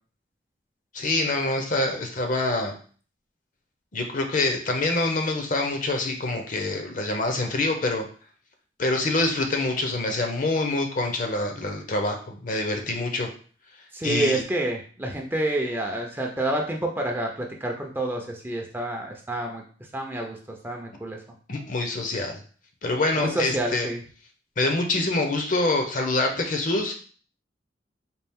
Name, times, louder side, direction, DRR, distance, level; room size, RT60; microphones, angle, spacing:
voice 1, 0.9-2.8 3.9-8.1 8.8-13.3 14.0-14.4 21.5-22.4 22.8-23.9 24.6-27.0, left 2 dB, 45° left, 4 dB, 0.7 m, -25 dB
voice 2, 13.9-19.6 19.9-20.4 20.6-21.2 23.2-24.0, right 1 dB, 10° right, 1 dB, 0.5 m, -28 dB
4.2 x 2.4 x 3.5 m, 0.42 s
head